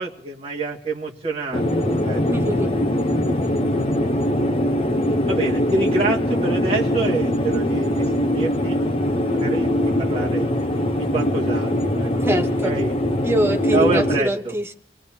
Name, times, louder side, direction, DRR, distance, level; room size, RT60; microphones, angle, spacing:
voice 1, 0.0-2.2 2.9-3.0 3.4-4.1 5.3-8.8 9.3-9.7 10.0-10.5 11.0-12.1 12.6-12.9 13.7-14.5, right 2 dB, 35° right, -1 dB, 1.9 m, -27 dB
sound 1, 1.5-14.2, left 1 dB, 30° left, 0.8 m, -22 dB
voice 2, 2.3-2.7 12.2-12.7 13.2-14.7, equal, 15° right, 5 dB, 0.9 m, -23 dB
26.5 x 18.0 x 2.8 m, 0.69 s
head